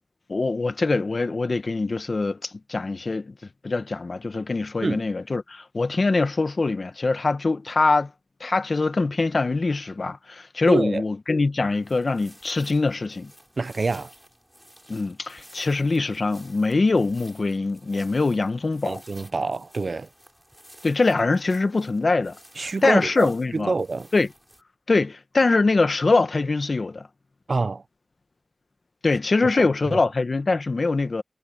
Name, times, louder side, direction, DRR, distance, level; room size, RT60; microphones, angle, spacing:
voice 1, 0.3-3.3 3.6-8.1 8.4-13.3 14.9-19.0 20.8-23.7 24.1-24.3 24.9-27.1 29.0-31.2, left 3 dB, 70° left, 1.1 m, -23 dB
voice 2, 10.7-11.0 13.6-14.1 18.8-20.1 22.6-24.1 27.5-27.8 29.6-30.0, right 3 dB, 80° right, 0.6 m, -27 dB
sound 1, 11.6-24.6, equal, 5° right, 6.7 m, -52 dB
wide cardioid pair, 50°, 0 cm